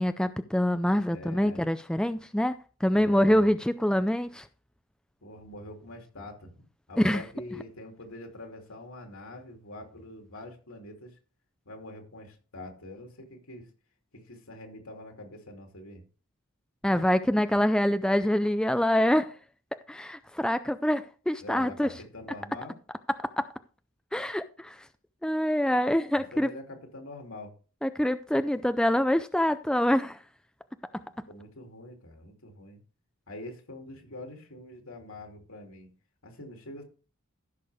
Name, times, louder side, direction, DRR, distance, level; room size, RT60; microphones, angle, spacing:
voice 1, 0.0-2.5 2.8-4.5 7.0-7.2 16.8-19.3 19.9-21.9 23.4-23.5 24.1-24.9 25.2-26.5 27.8-30.2 30.9-31.0, equal, 5° left, 0.4 m, -25 dB
voice 2, 1.1-1.6 2.9-3.5 5.2-6.5 6.9-11.2 11.6-13.7 14.1-16.0 21.4-22.8 26.1-27.5 31.3-32.8 33.3-35.9 36.2-36.8, left 1 dB, 80° left, 2.8 m, -44 dB
15.0 x 6.7 x 3.4 m
head